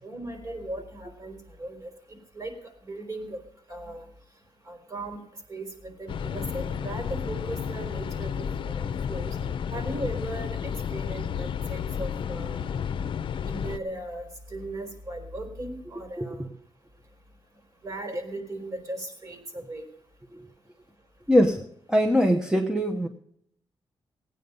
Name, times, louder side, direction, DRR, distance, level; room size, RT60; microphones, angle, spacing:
voice 1, 0.0-1.9 2.3-2.5 2.8-3.4 3.7-4.1 4.7-5.2 5.5-9.4 9.7-12.6 13.5-16.5 17.8-19.8, right 1 dB, 40° right, 4 dB, 4.2 m, -37 dB
sound 1, 6.1-13.8, left 7 dB, 65° left, 0.6 m, -31 dB
voice 2, 21.3-23.1, equal, 5° right, 3 dB, 1.0 m, -22 dB
17.5 x 9.2 x 5.4 m, 0.68 s
wide cardioid pair, 115°, 9 cm